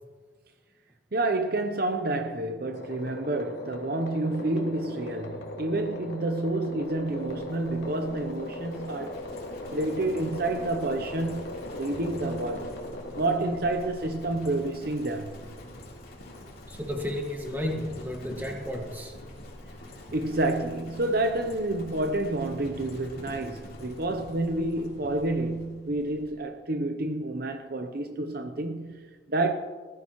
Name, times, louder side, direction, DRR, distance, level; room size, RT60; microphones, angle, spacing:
voice 1, 1.1-9.2 9.7-12.7 13.2-15.4 20.1-29.5, right 2 dB, 50° right, 0.7 m, -29 dB
sound 1, 2.7-15.4, left 1 dB, 65° left, 2.6 m, -39 dB
Livestock farm animals working animals, 6.8-26.5, left 1 dB, 50° left, 3.3 m, -46 dB
voice 2, 16.7-19.1, left 1 dB, 10° right, 1.7 m, -33 dB
20.5 x 15.0 x 3.1 m
head